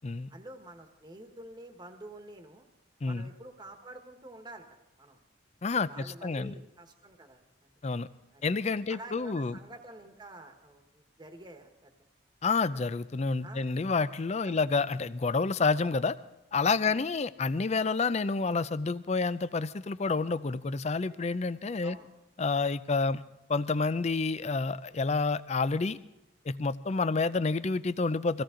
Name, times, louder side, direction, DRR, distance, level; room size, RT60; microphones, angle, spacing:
voice 1, 0.3-2.6 3.0-4.7 5.0-5.2 5.7-7.7 8.3-8.5 8.9-11.9 12.6-12.7 13.4-13.7 14.4-14.6 16.8-17.0 21.8-22.1, right 1 dB, 20° right, 5 dB, 1.3 m, -48 dB
voice 2, 5.6-6.5 7.8-8.1 8.4-9.6 12.4-16.2 16.5-22.0 22.4-23.2 23.5-26.0 26.5-28.4, left 4 dB, 35° left, 15 dB, 0.5 m, -29 dB
23.0 x 16.5 x 3.8 m, 0.91 s
head